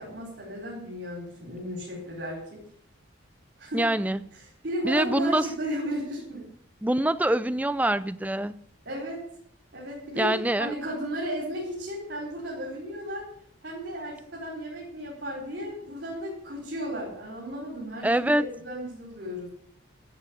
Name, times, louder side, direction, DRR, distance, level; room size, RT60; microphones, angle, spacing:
voice 1, 0.0-2.6 3.6-3.8 4.3-6.5 8.8-9.2 9.7-10.3 10.6-13.3 13.6-19.5, equal, 55° right, 4.6 m, -34 dB
voice 2, 3.7-4.2 4.8-5.5 6.8-8.5 10.2-10.7 18.0-18.4, right 1 dB, 10° right, 0.4 m, -24 dB
13.0 x 7.7 x 8.5 m
head